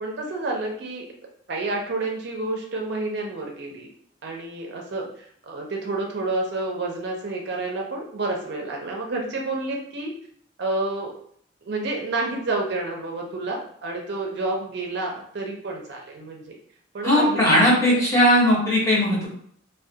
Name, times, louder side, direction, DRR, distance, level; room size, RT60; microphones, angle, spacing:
voice 1, 0.0-1.1 1.5-3.9 4.2-5.1 5.4-10.1 10.6-11.1 11.7-16.6 16.9-18.0, right 2 dB, 55° right, 0 dB, 0.4 m, -29 dB
voice 2, 17.0-19.3, equal, 15° left, -6 dB, 0.7 m, -18 dB
2.2 x 2.1 x 2.6 m, 0.62 s
head